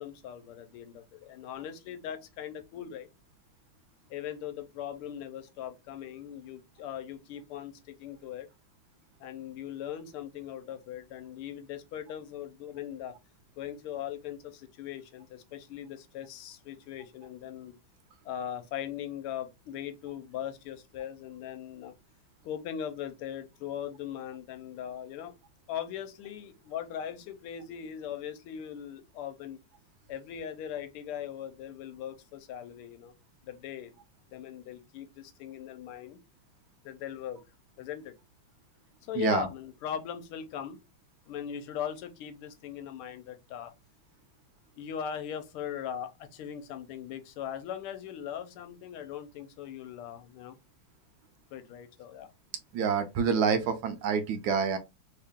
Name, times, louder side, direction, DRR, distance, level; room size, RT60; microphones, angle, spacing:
voice 1, 0.0-3.1 4.1-8.5 9.2-13.2 13.6-17.7 18.2-21.9 22.4-25.3 25.7-29.6 30.1-33.1 33.4-33.9 34.3-36.2 36.8-37.4 37.8-38.1 39.0-40.8 41.3-43.7 44.8-50.6 51.5-52.3, left 9 dB, 85° left, 1.5 m, -39 dB
voice 2, 39.2-39.5 52.7-54.8, right 6 dB, 75° right, 1.3 m, -27 dB
3.5 x 2.8 x 3.5 m
omnidirectional pair, 2.4 m